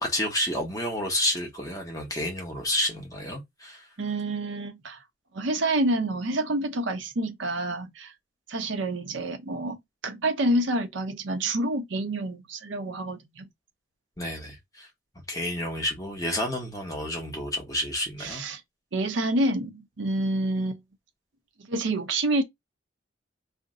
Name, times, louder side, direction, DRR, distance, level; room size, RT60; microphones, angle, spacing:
voice 1, 0.0-3.9 14.2-14.9 15.3-18.4, left 1 dB, 20° left, 0.8 m, -30 dB
voice 2, 4.0-5.0 5.3-8.1 8.5-9.8 10.0-13.5 18.2-18.6 18.9-20.8 21.7-22.4, right 1 dB, 85° right, 0.7 m, -28 dB
2.5 x 2.1 x 3.6 m
head